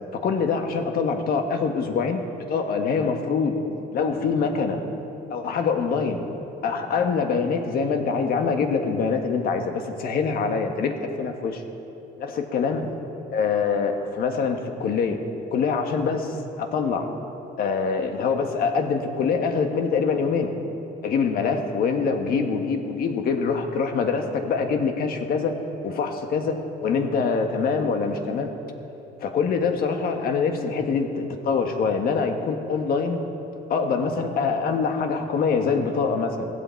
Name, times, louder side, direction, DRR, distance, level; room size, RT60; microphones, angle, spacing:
voice 1, 0.1-2.2 2.5-3.6 3.9-4.8 5.3-6.2 6.6-11.6 12.2-12.9 13.3-15.2 15.5-17.1 17.6-20.5 21.0-25.5 25.8-28.5 29.2-33.2 33.7-36.5, left 5 dB, 65° left, 5 dB, 1.6 m, -24 dB
17.0 x 15.5 x 4.6 m, 3.0 s
cardioid pair, 110°, 17 cm